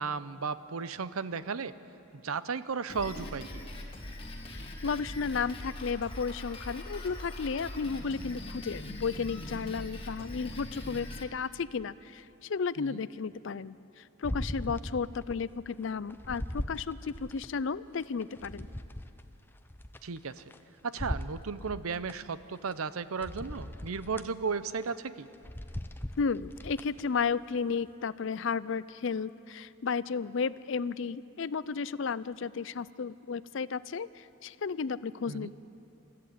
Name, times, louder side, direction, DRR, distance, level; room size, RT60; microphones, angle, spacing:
voice 1, 0.0-1.7 2.2-3.4 12.8-13.0 20.0-20.4 20.8-25.3 35.3-35.5, right 5 dB, 90° right, 14 dB, 0.7 m, -35 dB
Drum kit, 2.9-11.2, left 1 dB, 25° left, 1.7 m, -42 dB
voice 2, 4.5-18.7 26.2-35.5, left 5 dB, 60° left, 18 dB, 0.4 m, -33 dB
sound 1, 14.2-15.4 15.8-17.5 18.0-20.6 21.0-22.2 22.7-22.8 23.2-24.3 24.8-25.0 25.3-27.0 27.5-27.6, left 1 dB, 10° left, 0.5 m, -39 dB
24.5 x 14.0 x 8.5 m, 2.7 s
head